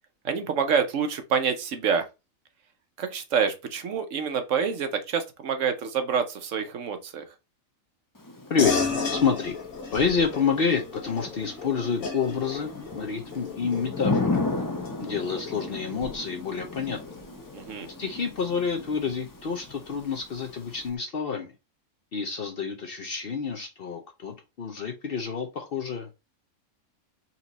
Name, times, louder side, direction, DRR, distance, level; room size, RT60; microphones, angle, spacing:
voice 1, 0.2-2.1 3.0-7.2 17.5-17.9, right 6 dB, 65° right, 1.0 m, -27 dB
Thunder / Rain, 8.2-20.9, left 3 dB, 25° left, 0.4 m, -35 dB
voice 2, 8.5-9.6 9.9-14.4 15.0-17.2 18.0-21.5 22.1-26.1, left 5 dB, 55° left, 0.7 m, -28 dB
sound 1, 8.6-18.4, left 4 dB, 75° left, 1.6 m, -34 dB
4.2 x 3.0 x 3.9 m
omnidirectional pair, 1.5 m